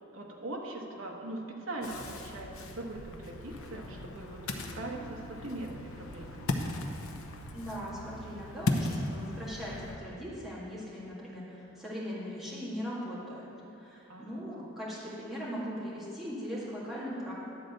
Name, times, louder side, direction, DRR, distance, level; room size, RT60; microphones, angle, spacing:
voice 1, 0.1-6.4 14.1-14.7, right 2 dB, 75° right, -1 dB, 1.1 m, -41 dB
Ocean, 1.8-10.0, left 2 dB, 85° left, 0.7 m, -37 dB
sound 1, 4.0-8.7, right 2 dB, 40° right, 1.1 m, -55 dB
voice 2, 7.5-17.3, equal, ahead, -9 dB, 1.8 m, -39 dB
11.5 x 4.0 x 7.8 m, 3.0 s
head